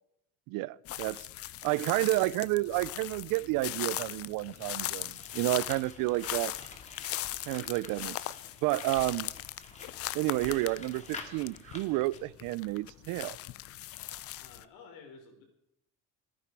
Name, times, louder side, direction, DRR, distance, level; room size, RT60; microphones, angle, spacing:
voice 1, 0.5-1.2 1.6-6.5 7.5-8.2 8.6-9.3 10.1-13.4, right 19 dB, 80° right, 0.6 m, -30 dB
sound 1, 0.9-14.6, left 15 dB, 45° left, 0.5 m, -40 dB
sound 2, 4.5-12.2, left 3 dB, 20° left, 2.4 m, -49 dB
voice 2, 14.4-15.4, left 5 dB, 80° left, 4.6 m, -52 dB
29.0 x 10.0 x 4.7 m
cardioid pair, 155°, 32 cm